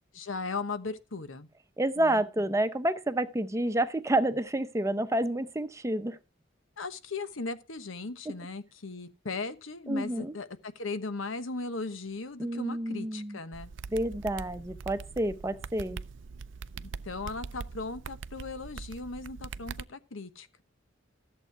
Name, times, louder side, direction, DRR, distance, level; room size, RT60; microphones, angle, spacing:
voice 1, 0.1-1.5 2.0-2.2 6.8-13.7 17.0-20.6, left 3 dB, 75° left, 1.1 m, -37 dB
voice 2, 1.8-6.2 9.9-10.3 12.4-13.4 13.9-16.0, right 1 dB, 15° right, 0.7 m, -29 dB
sound 1, 13.5-19.8, right 5 dB, 65° right, 0.5 m, -42 dB
13.5 x 7.7 x 4.6 m
head